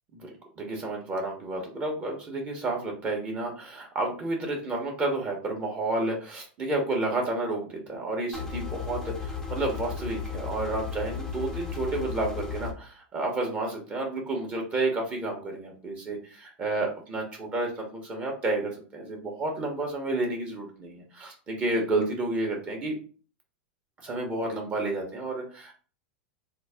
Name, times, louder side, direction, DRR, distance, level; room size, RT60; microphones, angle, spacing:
voice 1, 0.1-23.0 24.0-25.7, right 2 dB, 25° right, 0 dB, 1.0 m, -31 dB
sound 1, 8.3-12.7, left 6 dB, 10° left, 0.6 m, -35 dB
3.8 x 2.1 x 3.5 m, 0.38 s
supercardioid pair, 135°, 6 cm